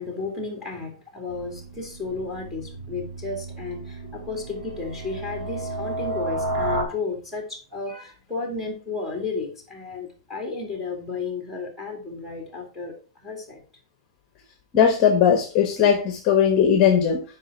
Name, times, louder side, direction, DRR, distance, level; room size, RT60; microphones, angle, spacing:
voice 1, 0.0-12.9 13.2-13.6, left 4 dB, 5° right, 2 dB, 2.4 m, -33 dB
sound 1, 1.3-6.8, right 1 dB, 65° right, 4.0 m, -32 dB
voice 2, 14.7-17.2, left 8 dB, 25° left, 6 dB, 1.0 m, -18 dB
9.0 x 5.2 x 4.8 m, 0.37 s
supercardioid pair, 165°, 3 cm